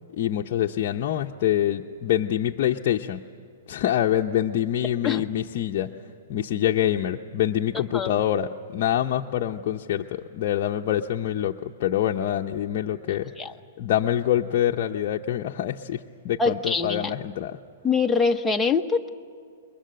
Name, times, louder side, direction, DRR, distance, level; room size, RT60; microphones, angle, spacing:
voice 1, 0.2-3.2 3.7-5.9 6.3-13.3 13.8-17.6, left 11 dB, 45° left, 1 dB, 0.7 m, -25 dB
voice 2, 16.4-17.1 17.8-19.1, left 4 dB, 5° left, 4 dB, 0.7 m, -24 dB
28.0 x 22.5 x 7.6 m, 2.2 s
hypercardioid pair, 160°, 0 cm